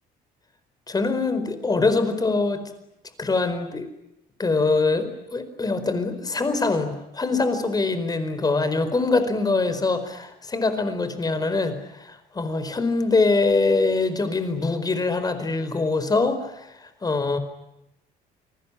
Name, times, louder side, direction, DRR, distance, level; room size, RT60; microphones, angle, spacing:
voice 1, 0.9-2.6 3.2-3.9 4.4-17.4, left 3 dB, 20° left, 11 dB, 4.6 m, -23 dB
29.0 x 20.5 x 9.9 m, 0.85 s
cardioid pair, 110°, 17 cm